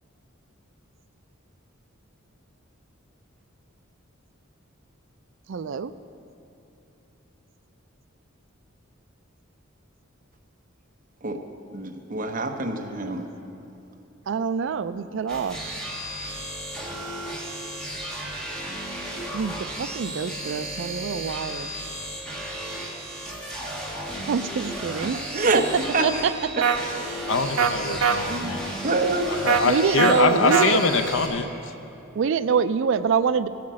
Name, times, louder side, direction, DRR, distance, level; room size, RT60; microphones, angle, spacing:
voice 1, 5.5-5.9 14.3-15.6 19.3-21.7 24.3-25.2 25.5-25.6 26.0-26.9 27.9-28.0 29.6-30.8 32.1-33.5, right 6 dB, 60° right, 13 dB, 0.4 m, -25 dB
voice 2, 11.7-13.2 25.3-25.6 25.9-26.0 26.6-26.7 28.3-29.5, right 3 dB, 40° right, 3 dB, 0.9 m, -26 dB
sound 1, 15.3-31.3, right 1 dB, 5° left, 1.6 m, -34 dB
sound 2, 26.6-26.8 27.6-27.7 28.0-28.2 29.5-29.6 30.0-30.1 30.5-30.7, right 7 dB, 90° right, 0.7 m, -20 dB
voice 3, 27.3-28.6 29.3-31.5, left 4 dB, 65° left, 7 dB, 0.6 m, -23 dB
16.5 x 5.9 x 7.5 m, 2.8 s
head